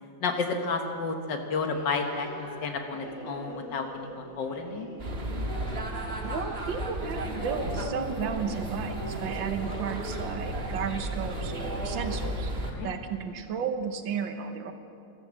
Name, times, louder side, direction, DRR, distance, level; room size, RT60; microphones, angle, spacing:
voice 1, 0.2-4.9 12.7-12.9, left 4 dB, 70° left, 4 dB, 2.0 m, -31 dB
sound 1, 1.6-12.3, equal, 50° left, 5.6 m, -41 dB
sound 2, 5.0-12.7, right 1 dB, 35° right, 1.6 m, -34 dB
voice 2, 6.2-12.5 12.8-14.7, right 6 dB, 85° right, 7 dB, 1.8 m, -33 dB
13.5 x 13.5 x 7.6 m, 2.4 s
omnidirectional pair, 2.0 m